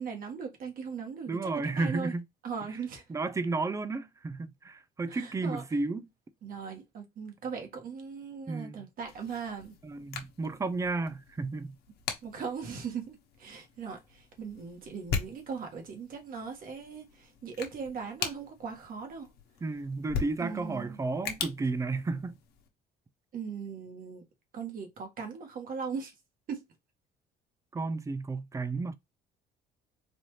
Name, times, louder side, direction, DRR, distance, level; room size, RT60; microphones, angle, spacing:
voice 1, 0.0-2.1 2.4-3.0 5.1-5.6 6.4-9.7 12.2-19.3 20.4-21.0 23.3-24.2 24.5-26.1 26.5-26.6, right 6 dB, 55° right, 1.5 m, -39 dB
voice 2, 1.3-2.2 3.1-6.0 8.5-8.8 9.8-11.7 19.6-22.3 27.7-28.9, right 3 dB, 20° right, 0.5 m, -32 dB
sound 1, 9.0-22.7, left 6 dB, 70° left, 1.0 m, -41 dB
4.2 x 2.6 x 3.1 m
cardioid pair, 110°, 17 cm